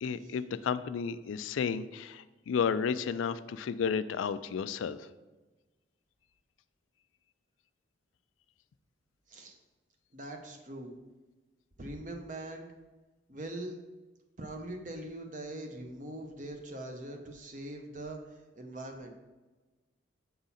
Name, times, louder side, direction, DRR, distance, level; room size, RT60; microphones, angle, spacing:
voice 1, 0.0-5.1, left 6 dB, 85° left, 14 dB, 0.3 m, -32 dB
voice 2, 10.1-10.9 11.8-12.7 13.3-13.8 14.4-18.2 18.6-19.1, right 1 dB, 40° right, 3 dB, 0.8 m, -42 dB
7.1 x 3.8 x 4.1 m, 1.2 s
head